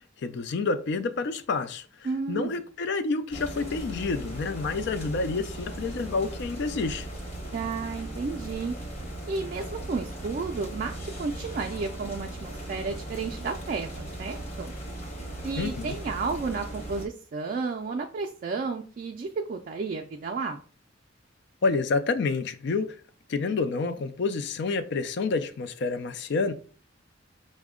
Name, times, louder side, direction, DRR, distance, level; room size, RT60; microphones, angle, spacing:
voice 1, 0.2-1.9 2.3-7.1 15.6-16.0 21.6-22.9 23.3-26.5, left 4 dB, 65° left, 0.4 m, -28 dB
voice 2, 2.0-2.6 7.5-8.8 9.3-14.7 15.4-20.6, right 4 dB, 45° right, 0.3 m, -32 dB
sound 1, 3.3-17.1, right 1 dB, 35° left, 0.9 m, -38 dB
4.9 x 2.1 x 3.6 m
head